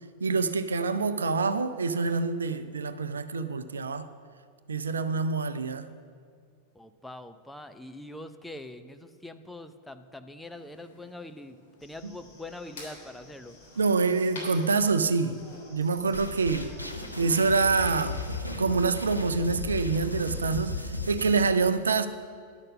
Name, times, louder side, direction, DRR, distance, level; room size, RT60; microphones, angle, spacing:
voice 1, 0.2-4.1 4.7-5.9 13.8-15.4 15.7-16.7 17.2-18.2 18.6-22.1, right 4 dB, 70° right, 0.5 m, -26 dB
voice 2, 6.7-13.6, left 1 dB, 5° left, 0.5 m, -43 dB
sound 1, 10.5-15.6, left 2 dB, 60° left, 3.3 m, -49 dB
sound 2, 11.8-18.4, left 1 dB, 30° left, 2.9 m, -53 dB
sound 3, 16.1-21.4, left 2 dB, 90° left, 0.8 m, -35 dB
11.5 x 6.6 x 6.2 m
figure-of-eight pair, 90°, 0 cm